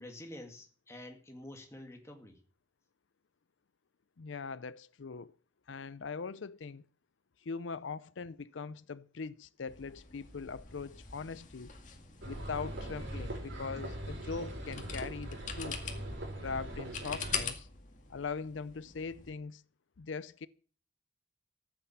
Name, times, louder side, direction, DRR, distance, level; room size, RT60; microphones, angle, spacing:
voice 1, 0.0-2.4, left 1 dB, 15° left, 2.2 m, -48 dB
voice 2, 4.2-5.3 5.7-6.8 7.4-11.7 12.2-15.8 16.4-17.7 18.1-19.6 20.0-20.5, left 5 dB, 90° left, 0.6 m, -41 dB
sound 1, 9.7-19.3, left 6 dB, 40° left, 2.1 m, -44 dB
sound 2, 12.2-17.5, right 1 dB, 85° right, 5.1 m, -41 dB
14.5 x 8.8 x 7.4 m
head